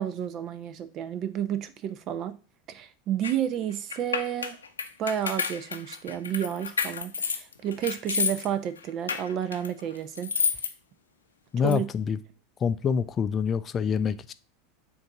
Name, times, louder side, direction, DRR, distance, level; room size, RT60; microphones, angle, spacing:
voice 1, 0.0-2.3 2.7-4.6 5.0-10.3 11.6-11.8, right 10 dB, 45° right, 0.7 m, -31 dB
sound 1, 3.2-3.3 3.9-8.5 8.8-10.7 11.7-11.8, left 6 dB, 85° left, 0.7 m, -30 dB
voice 2, 11.5-12.2 12.6-14.3, left 7 dB, 30° left, 0.4 m, -26 dB
7.8 x 2.8 x 5.8 m
figure-of-eight pair, 85°, 0 cm